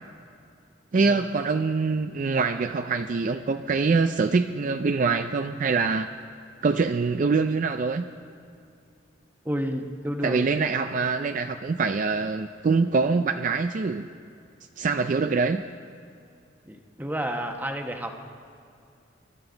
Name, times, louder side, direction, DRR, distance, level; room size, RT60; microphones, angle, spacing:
voice 1, 0.9-6.1 6.6-8.0 10.2-14.1 14.8-15.6, right 4 dB, 45° right, 8 dB, 0.4 m, -24 dB
voice 2, 9.4-10.4 16.7-18.2, equal, 10° right, 4 dB, 1.0 m, -30 dB
24.5 x 12.5 x 3.9 m, 2.5 s
head